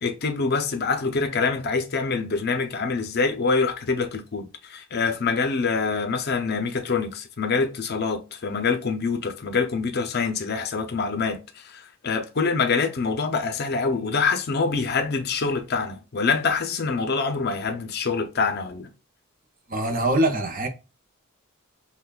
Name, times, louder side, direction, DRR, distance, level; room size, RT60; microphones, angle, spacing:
voice 1, 0.0-18.9, left 4 dB, 50° left, 0.5 m, -25 dB
voice 2, 19.7-20.7, right 1 dB, 40° right, 0.7 m, -23 dB
5.7 x 2.2 x 2.3 m
head